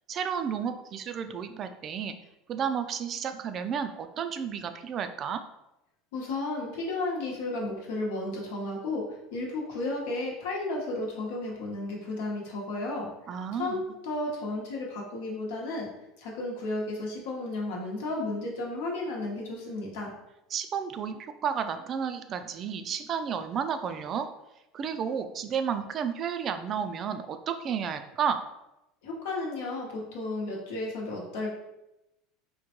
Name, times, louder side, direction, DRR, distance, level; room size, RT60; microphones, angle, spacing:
voice 1, 0.1-2.1 2.5-5.4 13.3-13.9 20.5-24.3 24.7-28.4, right 7 dB, 40° right, 8 dB, 0.3 m, -32 dB
voice 2, 6.1-9.0 9.3-13.1 13.6-15.9 16.2-20.1 29.0-31.5, left 2 dB, 80° left, -2 dB, 0.9 m, -33 dB
3.7 x 2.2 x 2.9 m, 0.91 s
supercardioid pair, 115°, 0 cm